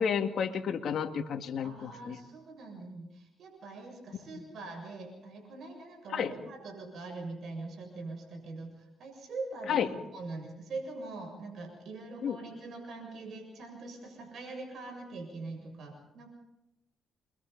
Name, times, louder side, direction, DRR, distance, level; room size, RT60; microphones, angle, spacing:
voice 1, 0.0-2.2 4.3-4.5 6.1-6.3 9.7-9.9 12.2-12.4, left 7 dB, 65° left, 4 dB, 2.2 m, -31 dB
voice 2, 1.6-16.3, right 3 dB, 65° right, 4 dB, 7.3 m, -43 dB
29.5 x 24.0 x 4.2 m, 0.89 s
cardioid pair, 90°, 0 cm